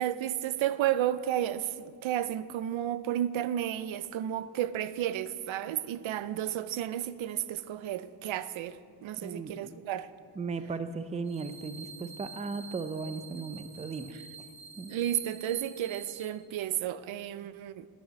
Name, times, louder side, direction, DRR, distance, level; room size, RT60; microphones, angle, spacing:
voice 1, 0.0-10.1 14.9-17.9, right 11 dB, 90° right, 0.6 m, -32 dB
voice 2, 9.2-9.5 10.4-14.1 14.8-14.9, right 4 dB, 15° right, 0.4 m, -36 dB
sound 1, 11.2-16.2, right 5 dB, 50° right, 2.8 m, -48 dB
11.0 x 9.1 x 6.3 m
wide cardioid pair, 145°, 46 cm